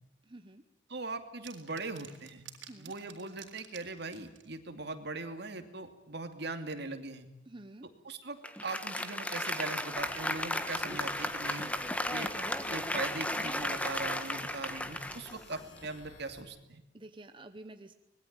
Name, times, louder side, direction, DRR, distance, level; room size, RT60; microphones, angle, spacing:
voice 1, 0.2-0.6 2.6-2.9 7.5-7.9 16.9-17.9, right 2 dB, 25° right, 8 dB, 1.0 m, -49 dB
voice 2, 0.9-2.5 2.8-7.3 8.0-11.7 12.1-16.8, right 3 dB, 65° right, 7 dB, 2.6 m, -40 dB
sound 1, 1.5-4.5, right 10 dB, 90° right, 3.8 m, -51 dB
Applause, 8.4-16.1, left 1 dB, 10° left, 1.6 m, -35 dB
sound 2, 9.9-16.4, left 2 dB, 85° left, 6.9 m, -55 dB
25.0 x 20.5 x 8.9 m, 0.86 s
head